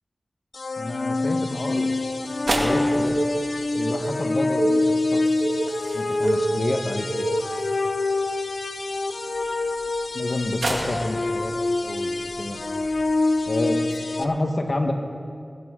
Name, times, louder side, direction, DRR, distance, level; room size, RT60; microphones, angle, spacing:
sound 1, 0.5-14.2, left 2 dB, 80° left, 0.6 m, -26 dB
voice 1, 0.8-2.0 2.5-3.2 3.8-4.8 5.1-5.2 5.9-7.2 10.1-11.5 11.8-12.1 12.4-12.6 13.5-14.9, left 1 dB, 55° left, 4 dB, 1.2 m, -28 dB
sound 2, 1.5-14.0, right 1 dB, 80° right, 2.2 m, -36 dB
sound 3, 2.9-7.7, right 2 dB, 45° right, 0.5 m, -28 dB
21.0 x 11.0 x 3.7 m, 2.3 s
wide cardioid pair, 80°, 0 cm